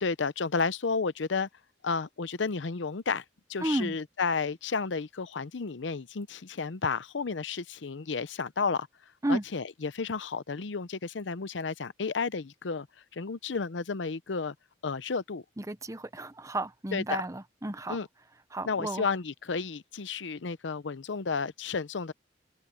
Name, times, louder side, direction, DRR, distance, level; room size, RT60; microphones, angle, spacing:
voice 1, 0.0-1.5 1.8-3.2 3.5-8.9 9.3-12.9 13.1-14.5 14.8-15.4 16.9-17.2 17.9-18.1 18.7-22.1, left 4 dB, 85° left, 0.7 m, -32 dB
voice 2, 3.6-4.0 9.2-9.4 15.6-18.0 18.5-19.1, right 1 dB, 15° right, 0.8 m, -32 dB
head